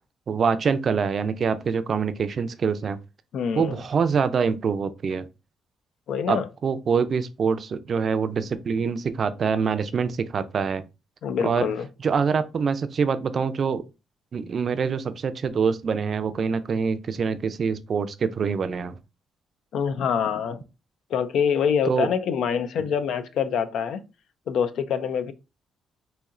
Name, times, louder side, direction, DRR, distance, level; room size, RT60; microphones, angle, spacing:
voice 1, 0.3-3.0 3.6-5.3 6.3-10.8 11.4-11.7 12.0-13.8 14.3-19.0 21.8-22.1, right 6 dB, 50° right, 0.4 m, -25 dB
voice 2, 3.3-3.8 6.1-6.5 11.2-11.9 19.7-20.6 21.1-24.0 24.5-25.3, left 7 dB, 75° left, 0.4 m, -25 dB
4.2 x 2.8 x 2.4 m
cardioid pair, 90°, 0 cm